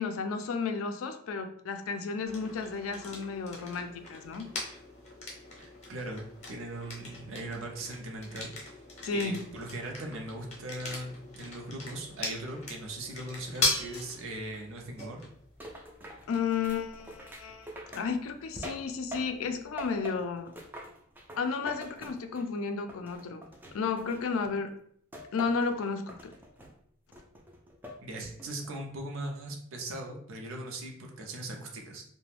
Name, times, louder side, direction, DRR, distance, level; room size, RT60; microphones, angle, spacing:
voice 1, 0.0-4.5 9.0-9.4 16.3-20.5 21.4-23.4 23.7-24.7 25.3-26.3, left 5 dB, 85° left, 7 dB, 0.4 m, -33 dB
sound 1, 2.3-20.0, left 2 dB, 35° left, 0.7 m, -40 dB
voice 2, 5.6-8.5 9.1-15.2 28.0-32.0, right 1 dB, 75° right, 1 dB, 0.5 m, -39 dB
sound 2, 15.6-19.5 19.8-22.6 22.9-24.5 25.1-25.7 26.1-26.7 27.1-28.0 28.4-28.8, equal, 10° right, 0.3 m, -45 dB
2.4 x 2.1 x 3.2 m, 0.64 s
head